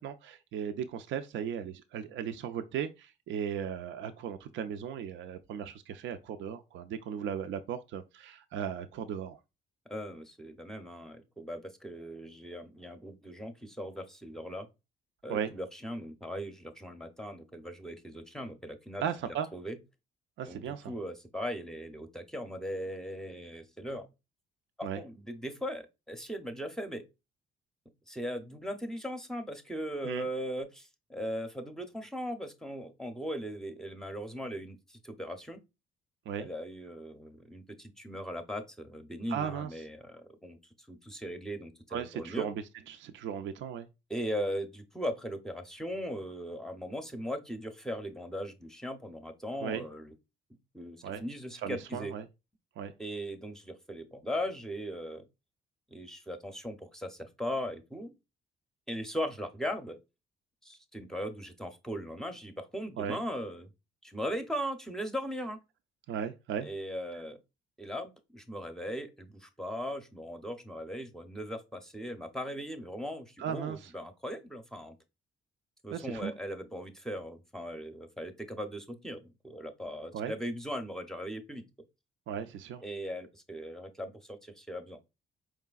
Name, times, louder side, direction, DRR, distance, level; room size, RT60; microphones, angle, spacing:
voice 1, 0.0-9.4 15.3-15.5 19.0-19.5 20.4-20.9 24.8-25.0 30.0-30.3 36.3-36.5 39.3-39.7 41.9-42.5 42.9-43.9 49.6-49.8 51.0-51.2 51.6-52.2 52.8-52.9 63.0-63.2 66.1-66.7 73.4-73.8 75.9-76.3 80.1-80.3 82.3-82.8, right 8 dB, 70° right, 0.4 m, -36 dB
voice 2, 9.9-14.7 15.2-19.8 20.5-24.1 24.8-27.0 28.1-35.6 36.4-40.6 40.9-42.5 44.1-50.1 50.7-52.2 53.0-55.3 55.9-58.1 58.9-60.0 60.6-63.7 64.0-65.6 66.6-67.4 67.8-74.9 75.8-81.6 82.8-85.0, equal, 5° left, 0.6 m, -39 dB
4.7 x 3.2 x 2.3 m
cardioid pair, 90°, 20 cm